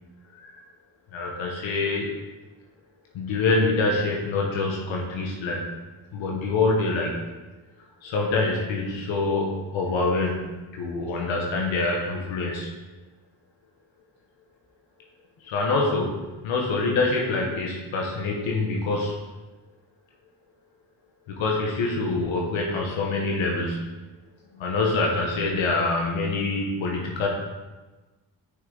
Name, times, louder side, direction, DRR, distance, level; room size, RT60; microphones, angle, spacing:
voice 1, 1.1-2.1 3.1-5.6 6.1-7.2 8.0-12.7 15.4-16.1 16.4-19.1 21.4-23.8 24.6-27.3, left 3 dB, 80° left, -1 dB, 1.2 m, -25 dB
6.5 x 5.7 x 3.9 m, 1.2 s
supercardioid pair, 55°, 46 cm